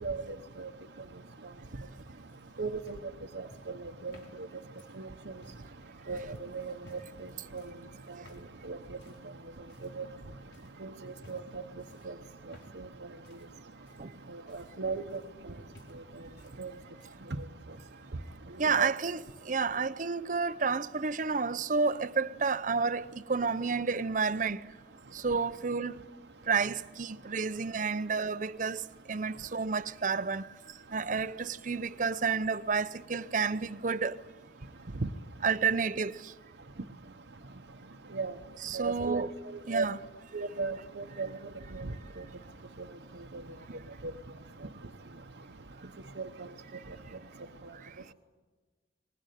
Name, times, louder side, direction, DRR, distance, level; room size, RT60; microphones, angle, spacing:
sound 1, 2.3-5.7 6.2-6.4 6.8-7.2 7.6-7.9 8.2-8.5 9.0-9.3 9.7-10.2 10.5-10.8 11.2-11.6 11.9-12.9 13.2-15.5 15.7-16.6 16.8-17.3 18.3-18.4, left 1 dB, 75° left, 4.4 m, -57 dB
voice 1, 2.6-3.0 3.4-3.5 4.0-4.1 5.0-5.1 6.1-6.2 6.5-6.7 7.5-7.6 8.7-8.8 10.0-10.1 10.8-10.9 11.3-11.6 12.1-12.2 14.5-15.2 16.6-16.7 18.6-18.9 38.1-38.3 38.7-39.3 39.7-39.8 40.3-41.3 41.7-41.9 46.2-46.3, right 4 dB, 75° right, 1.0 m, -34 dB
voice 2, 18.6-24.6 25.1-26.0 26.5-34.2 35.4-36.3 38.6-39.3 39.7-40.0 47.7-47.9, right 5 dB, 45° right, 0.7 m, -31 dB
23.5 x 20.5 x 9.2 m
head